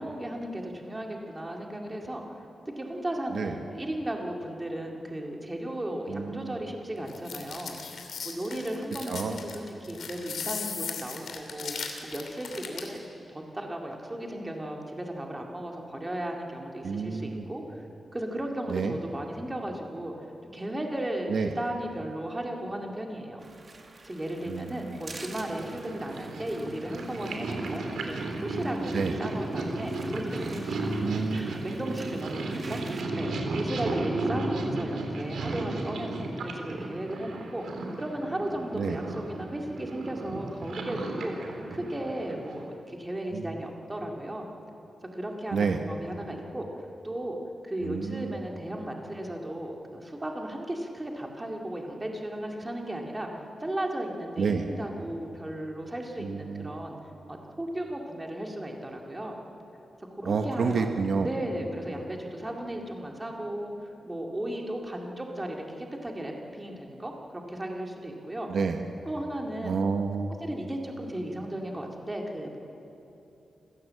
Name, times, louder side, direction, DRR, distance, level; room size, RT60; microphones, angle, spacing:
voice 1, 0.0-2.2 2.7-7.7 8.2-17.8 18.1-20.1 20.5-23.4 24.0-30.9 31.3-37.6 37.9-41.3 41.7-44.5 45.1-46.7 47.0-47.4 47.6-53.3 53.6-57.0 57.3-59.4 60.2-60.9 61.2-63.7 64.0-68.5 69.1-69.8 70.4-72.6, right 1 dB, 15° right, 1 dB, 2.3 m, -35 dB
voice 2, 6.1-6.6 9.1-9.4 16.8-17.4 18.7-19.0 21.3-21.5 24.5-25.0 28.9-29.2 31.0-31.5 38.7-39.0 43.3-43.5 45.5-45.8 47.8-48.4 54.4-54.7 56.2-56.7 60.2-61.3 68.5-68.8 69.6-70.3, right 5 dB, 60° right, 5 dB, 1.2 m, -29 dB
sound 1, 7.1-13.0, left 6 dB, 75° left, 2.9 m, -37 dB
sound 2, 23.4-33.0, right 3 dB, 30° right, 2.0 m, -50 dB
Purr, 25.1-42.7, right 2 dB, 85° right, 3.1 m, -34 dB
27.5 x 16.0 x 7.7 m, 2.9 s
wide cardioid pair, 175°, 0 cm